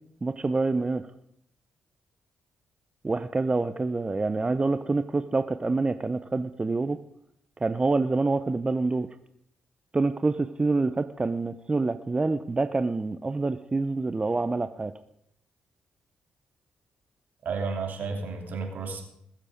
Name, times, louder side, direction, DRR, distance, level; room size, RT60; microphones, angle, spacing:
voice 1, 0.2-1.1 3.0-7.0 7.6-9.1 9.9-14.9, right 3 dB, 30° right, 11 dB, 0.7 m, -26 dB
voice 2, 17.4-19.0, right 4 dB, 60° right, 3 dB, 3.0 m, -32 dB
20.5 x 7.5 x 5.1 m, 0.74 s
hypercardioid pair, 45°, 3 cm